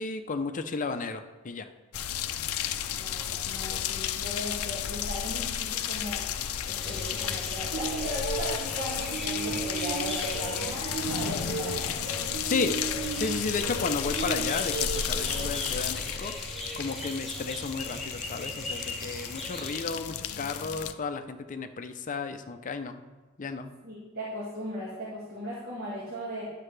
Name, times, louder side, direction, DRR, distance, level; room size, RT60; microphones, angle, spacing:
voice 1, 0.0-1.7 3.4-3.8 12.5-12.8 13.1-16.3 16.8-23.0 23.4-23.7, left 4 dB, 40° left, 8 dB, 0.5 m, -33 dB
sound 1, 1.9-20.9, left 9 dB, 90° left, 0.5 m, -33 dB
voice 2, 2.9-6.3 6.7-11.9 23.8-26.5, equal, 45° right, -6 dB, 1.8 m, -37 dB
sound 2, 6.8-19.8, left 1 dB, ahead, 2.3 m, -39 dB
sound 3, 7.7-15.5, right 5 dB, 65° right, 0.4 m, -36 dB
11.0 x 6.6 x 3.3 m, 1.3 s
head